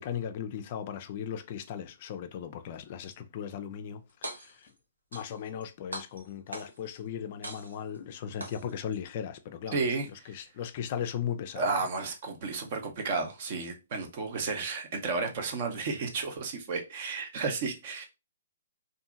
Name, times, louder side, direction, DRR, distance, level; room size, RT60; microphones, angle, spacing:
voice 1, 0.0-4.0 4.4-4.7 5.1-9.9 10.3-11.6, left 8 dB, 45° left, 0.3 m, -37 dB
sound 1, 4.1-4.7 5.1-5.6 5.9-6.9 7.4-8.0 8.4-9.0, right 1 dB, 85° right, 0.7 m, -41 dB
voice 2, 9.7-10.3 11.6-18.0, right 4 dB, 45° right, 0.6 m, -32 dB
2.7 x 2.5 x 2.3 m
hypercardioid pair, 130°, 0 cm